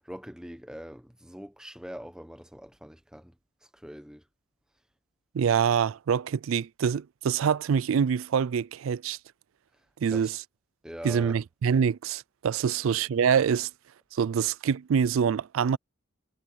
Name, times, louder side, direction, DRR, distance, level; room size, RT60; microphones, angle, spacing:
voice 1, 0.1-3.4 3.7-4.2 10.0-10.3 10.8-11.4 12.7-12.8, equal, 5° right, 1.0 m, -43 dB
voice 2, 5.3-9.2 10.0-10.3 11.0-13.7 14.1-15.8, right 7 dB, 85° right, 0.4 m, -25 dB
head